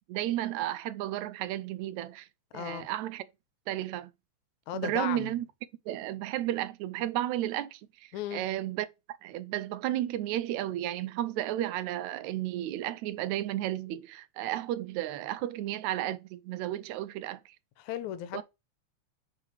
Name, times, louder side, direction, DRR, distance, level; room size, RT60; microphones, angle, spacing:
voice 1, 0.1-2.3 2.5-3.3 3.7-4.1 4.7-5.5 5.9-8.9 9.2-17.6 18.3-18.4, right 13 dB, 80° right, 1.9 m, -33 dB
voice 2, 2.5-2.9 4.7-5.3 8.1-8.4 17.8-18.4, left 11 dB, 85° left, 2.1 m, -36 dB
6.0 x 5.0 x 4.6 m
omnidirectional pair, 3.4 m